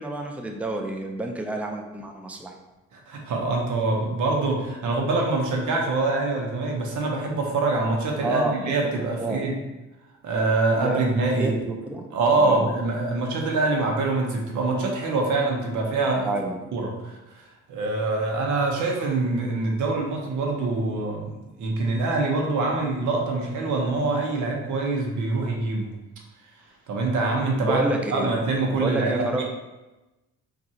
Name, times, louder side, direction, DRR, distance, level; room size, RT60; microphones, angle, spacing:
voice 1, 0.0-2.5 8.2-8.9 9.2-9.4 10.7-11.0 11.4-12.0 12.4-12.7 16.2-16.6 27.6-28.3 28.8-29.4, right 2 dB, 5° right, 2 dB, 0.5 m, -29 dB
voice 2, 2.9-9.5 10.2-11.5 12.1-16.3 16.7-25.9 26.9-29.4, right 3 dB, 75° right, 0 dB, 0.9 m, -25 dB
3.6 x 2.6 x 4.2 m, 1.1 s
cardioid pair, 90°, 30 cm